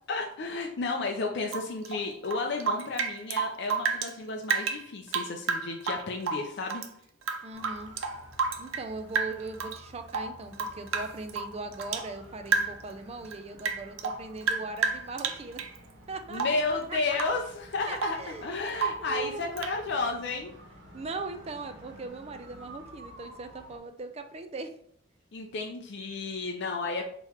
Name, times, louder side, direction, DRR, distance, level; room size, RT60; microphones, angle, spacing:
voice 1, 0.1-6.8 16.3-20.5 25.3-27.0, left 3 dB, 60° left, 1 dB, 0.5 m, -32 dB
Rain / Drip, 1.5-4.1 4.4-6.9 7.2-8.9 9.1-9.8 10.1-12.1 12.5-12.9 13.2-15.8 16.3-16.7 17.1-17.4 17.7-18.3 18.7-19.1 19.6-19.8, right 5 dB, 85° right, 0.5 m, -31 dB
voice 2, 7.4-7.9 8.6-15.6 16.1-17.2 17.9-18.7 19.0-19.6 20.9-24.7, right 3 dB, 30° right, 8 dB, 0.4 m, -39 dB
sound 1, 7.5-23.8, equal, 60° right, 1.4 m, -52 dB
3.8 x 2.9 x 4.3 m, 0.64 s
head